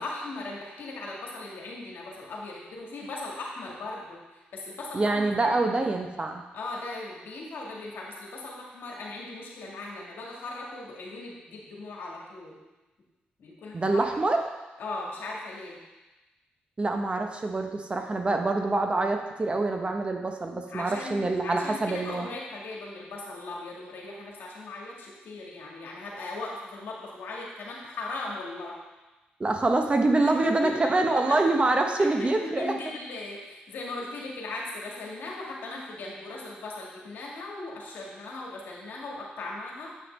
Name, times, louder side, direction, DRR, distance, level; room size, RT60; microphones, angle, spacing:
voice 1, 0.0-5.5 6.5-12.6 13.4-14.1 14.8-15.8 20.7-28.8 30.2-31.2 32.0-39.9, left 2 dB, 70° left, -2 dB, 1.7 m, -38 dB
voice 2, 4.9-6.4 13.7-14.4 16.8-22.3 29.4-32.7, right 2 dB, 30° right, 4 dB, 0.9 m, -25 dB
8.0 x 5.8 x 3.3 m, 1.1 s
cardioid pair, 60°, 4 cm